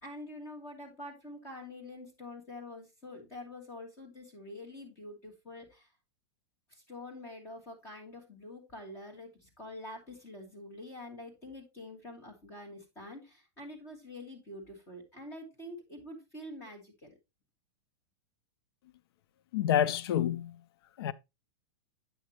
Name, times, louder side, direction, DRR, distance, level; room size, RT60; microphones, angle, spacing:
voice 1, 0.0-5.9 6.7-17.1, left 1 dB, 20° left, 2.5 m, -46 dB
voice 2, 19.5-20.5 21.0-21.1, left 10 dB, 60° left, 0.5 m, -28 dB
8.9 x 6.4 x 3.1 m
supercardioid pair, 175°, 14 cm